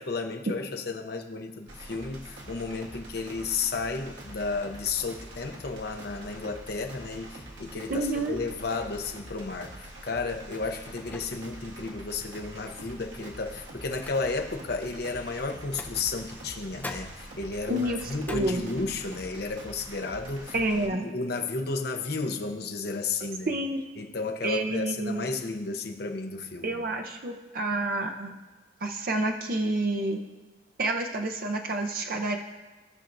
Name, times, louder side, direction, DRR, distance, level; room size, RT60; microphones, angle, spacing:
voice 1, 0.0-20.5 20.8-23.5 24.0-26.7, left 4 dB, 55° left, 5 dB, 0.7 m, -33 dB
sound 1, 1.7-20.9, right 1 dB, 85° right, 1.4 m, -45 dB
sound 2, 7.4-7.8 8.2-8.4 8.7-9.1 9.5-9.6 10.1-10.5 10.8-11.0 11.4-11.8 12.2-17.5, left 1 dB, 30° left, 1.4 m, -55 dB
voice 2, 7.9-8.4 17.7-18.6 20.5-21.0 23.5-23.8 24.4-25.3 26.6-28.4 28.8-30.2 30.8-32.4, right 2 dB, 50° right, 3 dB, 0.7 m, -29 dB
sound 3, 11.0-11.7 12.1-12.2 13.2-14.6 15.6-16.5 16.8-19.2 19.6-19.7 20.0-20.4, left 2 dB, 10° left, 0.4 m, -45 dB
16.5 x 5.8 x 2.6 m, 1.2 s
head